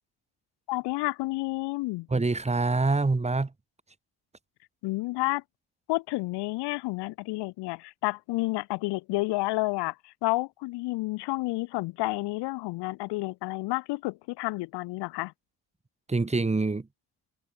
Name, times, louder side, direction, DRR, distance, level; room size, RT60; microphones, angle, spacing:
voice 1, 0.7-2.1 4.8-5.4 5.9-15.3, left 21 dB, 80° left, 0.6 m, -30 dB
voice 2, 2.1-3.5 16.1-16.9, right 3 dB, 15° right, 1.7 m, -25 dB
cardioid pair, 80°, 40 cm